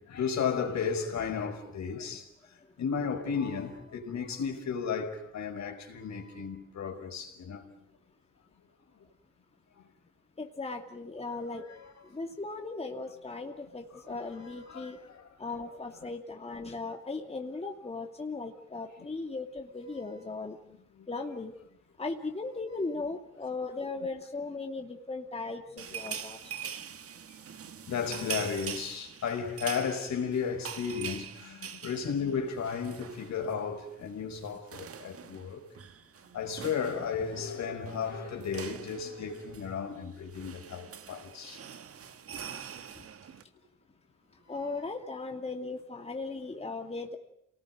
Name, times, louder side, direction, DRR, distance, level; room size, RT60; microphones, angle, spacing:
voice 1, 0.0-2.3 2.8-7.6 11.6-11.9 13.9-15.3 20.6-21.1 25.8-25.9 27.9-35.6 36.3-41.6 44.6-44.7, left 6 dB, 65° left, 5.1 m, -34 dB
voice 2, 10.4-11.6 12.1-15.0 15.4-20.6 21.1-21.6 22.0-26.4 44.5-47.2, left 3 dB, 20° left, 2.6 m, -37 dB
sound 1, 25.8-33.7 33.9-34.1 34.4-43.4, right 8 dB, 50° right, 1.7 m, -44 dB
28.5 x 19.5 x 9.5 m
cardioid pair, 90°, 30 cm